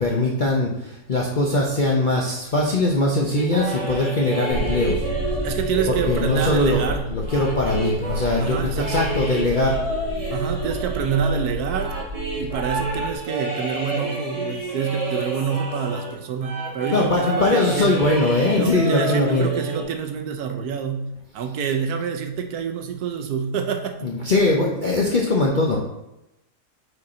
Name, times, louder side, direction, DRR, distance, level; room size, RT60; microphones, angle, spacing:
voice 1, 0.0-5.0 6.1-6.8 7.1-9.8 16.9-19.5 24.0-25.8, left 2 dB, 50° left, -2 dB, 0.5 m, -21 dB
sound 1, 3.4-16.1 16.4-19.8, right 2 dB, 25° right, 1.1 m, -29 dB
sound 2, 4.5-13.1, equal, 70° left, 1.7 m, -31 dB
voice 2, 5.4-7.1 8.4-9.2 10.3-12.0 12.4-18.1 18.5-24.0, right 6 dB, 70° right, 5 dB, 1.1 m, -27 dB
4.9 x 4.5 x 4.2 m, 0.88 s
omnidirectional pair, 1.7 m